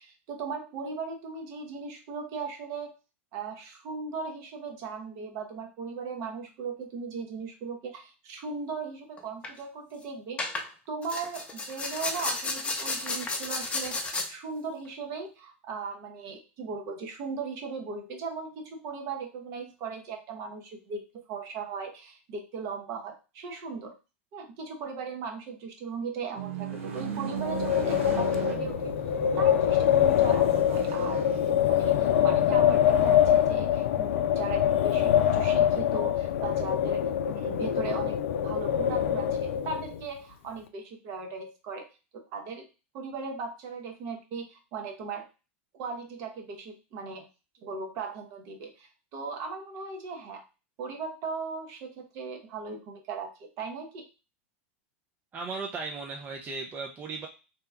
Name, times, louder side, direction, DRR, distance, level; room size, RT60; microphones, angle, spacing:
voice 1, 0.0-2.9 3.3-14.0 14.3-23.9 24.3-28.9 29.4-31.3 31.6-41.9 42.1-42.7 42.9-45.3 45.7-47.3 47.6-50.4 50.8-54.1, right 4 dB, 50° right, 4 dB, 0.9 m, -38 dB
sound 1, 9.2-9.5 10.4-10.7 11.0-14.3, left 3 dB, 15° left, 0.7 m, -32 dB
sound 2, 26.3-33.4, right 8 dB, 80° right, 0.7 m, -38 dB
Wind, 27.4-40.0, left 10 dB, 75° left, 0.4 m, -24 dB
voice 2, 55.3-57.3, right 4 dB, 25° right, 1 dB, 0.5 m, -36 dB
2.8 x 2.2 x 3.4 m, 0.30 s
hypercardioid pair, 110°, 7 cm